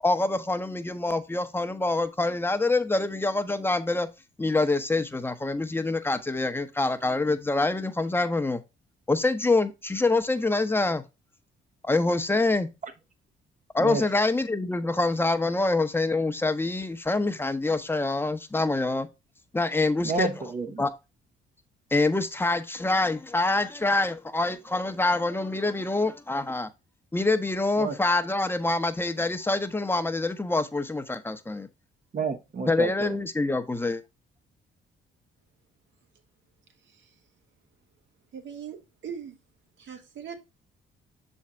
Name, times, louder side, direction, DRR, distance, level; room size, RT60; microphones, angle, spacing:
voice 1, 0.0-4.1 4.4-8.6 9.1-11.0 11.8-12.7 13.7-19.1 19.5-20.3 20.8-20.9 21.9-26.7 27.1-31.7 32.7-34.0, left 2 dB, 10° left, 0.7 m, -26 dB
voice 2, 20.0-20.8 27.8-28.0 32.1-33.2, right 3 dB, 40° right, 0.9 m, -30 dB
voice 3, 38.3-39.3 39.8-40.4, right 7 dB, 70° right, 1.3 m, -39 dB
6.4 x 4.4 x 3.6 m
cardioid pair, 90°, 20 cm